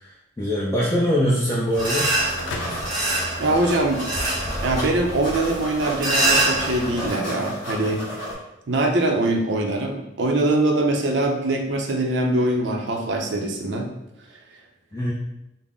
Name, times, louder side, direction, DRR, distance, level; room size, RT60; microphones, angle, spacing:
voice 1, 0.0-2.2 14.9-15.1, equal, 15° left, -6 dB, 0.4 m, -23 dB
sound 1, 1.7-1.9 2.2-4.8 5.1-8.3, equal, 45° left, 1.4 m, -33 dB
sound 2, 1.8-7.1, right 1 dB, 20° right, 0.7 m, -25 dB
sound 3, 2.4-4.3, left 2 dB, 90° left, 0.5 m, -36 dB
voice 2, 3.4-4.0 4.6-8.0 8.7-13.9, right 2 dB, 70° right, 2 dB, 0.5 m, -23 dB
3.7 x 2.0 x 3.6 m, 0.88 s
head